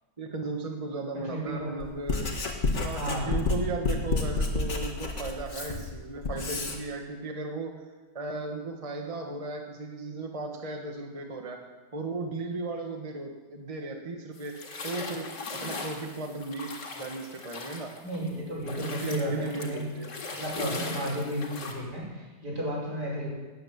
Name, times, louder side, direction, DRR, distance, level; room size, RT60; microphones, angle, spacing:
voice 1, 0.2-2.3 2.7-7.7 8.1-11.6 11.9-16.7 17.0-17.9 18.9-20.1 20.6-20.9, right 3 dB, 20° right, 3 dB, 1.4 m, -36 dB
voice 2, 1.3-1.8 2.9-3.3 18.0-19.9 20.3-23.3, equal, 75° right, -4 dB, 6.0 m, -33 dB
Writing, 1.8-6.8, left 3 dB, 45° left, 2.1 m, -30 dB
sound 1, 14.3-18.3 18.6-21.7, left 3 dB, 75° left, 2.7 m, -39 dB
18.0 x 9.5 x 7.5 m, 1.3 s
omnidirectional pair, 1.8 m